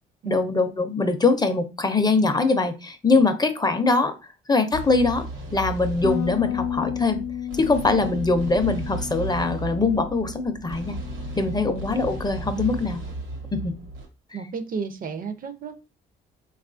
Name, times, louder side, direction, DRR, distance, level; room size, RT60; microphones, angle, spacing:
voice 1, 0.2-4.2 4.5-5.3 5.5-7.2 7.5-10.9 11.3-13.0 13.5-13.7, left 3 dB, 20° left, 8 dB, 0.4 m, -22 dB
sound 1, 4.7-14.1, right 2 dB, 85° right, 1.1 m, -35 dB
Bass guitar, 6.0-12.3, left 11 dB, 85° left, 0.5 m, -33 dB
voice 2, 14.3-15.7, right 5 dB, 45° right, 9 dB, 0.5 m, -32 dB
3.5 x 2.3 x 2.4 m, 0.28 s
cardioid pair, 90°, 20 cm